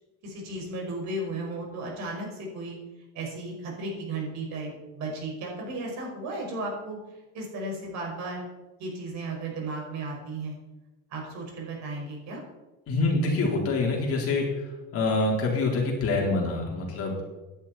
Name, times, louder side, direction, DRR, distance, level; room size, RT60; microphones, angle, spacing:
voice 1, 0.2-2.8 3.1-7.0 7.3-8.4 8.8-10.6 11.1-12.4, right 2 dB, 50° right, 0 dB, 5.5 m, -35 dB
voice 2, 12.9-14.5 14.9-17.2, left 3 dB, 40° left, -2 dB, 4.1 m, -25 dB
17.0 x 11.5 x 4.3 m, 1.1 s
cardioid pair, 155°, 37 cm